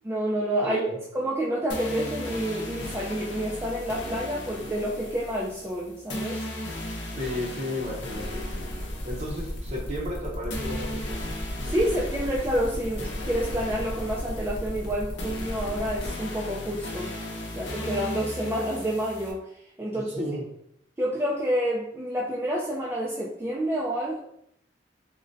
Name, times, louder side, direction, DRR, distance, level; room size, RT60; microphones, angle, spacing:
voice 1, 0.0-0.8 1.1-6.4 11.7-17.1 17.5-19.4 19.8-20.2 21.0-24.2, equal, 15° right, -5 dB, 0.3 m, -28 dB
voice 2, 0.6-1.0 7.2-8.6 9.1-11.2 19.9-20.5, left 1 dB, 35° right, -1 dB, 0.7 m, -33 dB
sound 1, 1.7-19.3, left 1 dB, 75° left, 0.7 m, -37 dB
sound 2, 8.1-16.1, left 1 dB, 50° left, 0.8 m, -37 dB
3.7 x 2.1 x 2.5 m, 0.73 s
head